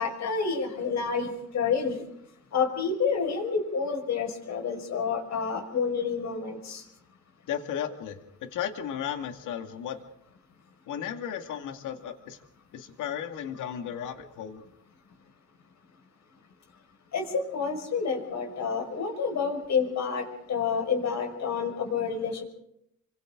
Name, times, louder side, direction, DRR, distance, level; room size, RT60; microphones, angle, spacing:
voice 1, 0.0-2.0 2.5-6.8 17.1-22.4, left 5 dB, 65° left, 4 dB, 5.6 m, -29 dB
voice 2, 7.5-8.2 8.5-10.0 10.9-12.4 12.7-14.6, left 9 dB, 85° left, 6 dB, 2.2 m, -34 dB
29.5 x 25.0 x 3.9 m, 0.74 s
cardioid pair, 90°, 30 cm